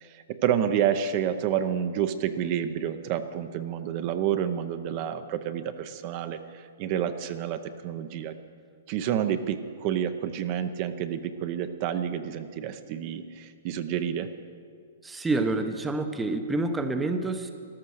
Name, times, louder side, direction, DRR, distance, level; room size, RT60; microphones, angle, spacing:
voice 1, 0.0-8.3 8.9-14.3, right 9 dB, 40° right, 9 dB, 0.7 m, -29 dB
voice 2, 15.0-17.5, right 2 dB, 10° right, 7 dB, 0.7 m, -28 dB
13.5 x 13.0 x 6.4 m, 2.1 s
hypercardioid pair, 150°, 0 cm